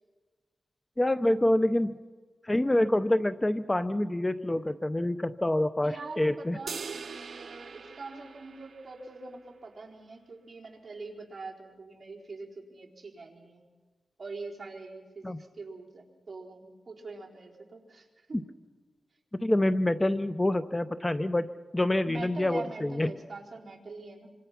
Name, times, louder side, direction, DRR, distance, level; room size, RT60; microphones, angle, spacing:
voice 1, 1.0-2.0 2.4-6.6 15.2-15.4 18.3-18.4 19.4-23.1, left 1 dB, 15° left, 12 dB, 0.6 m, -27 dB
voice 2, 5.8-13.6 14.2-18.5 22.1-24.3, right 3 dB, 45° right, -1 dB, 4.3 m, -44 dB
sound 1, 6.7-9.2, right 5 dB, 70° right, 0.9 m, -42 dB
27.0 x 25.5 x 5.9 m, 1.4 s
wide cardioid pair, 95°, 0 cm